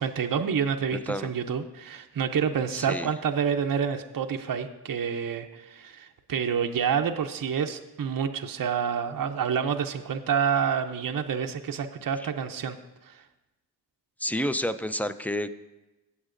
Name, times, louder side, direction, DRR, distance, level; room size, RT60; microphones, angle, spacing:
voice 1, 0.0-12.8 13.0-13.2, right 7 dB, 50° right, 5 dB, 0.6 m, -28 dB
voice 2, 0.9-1.3 2.7-3.1 12.2-12.3 14.2-15.6, equal, 5° left, 12 dB, 0.4 m, -30 dB
16.5 x 7.2 x 2.5 m, 1.0 s
cardioid pair, 45°, 42 cm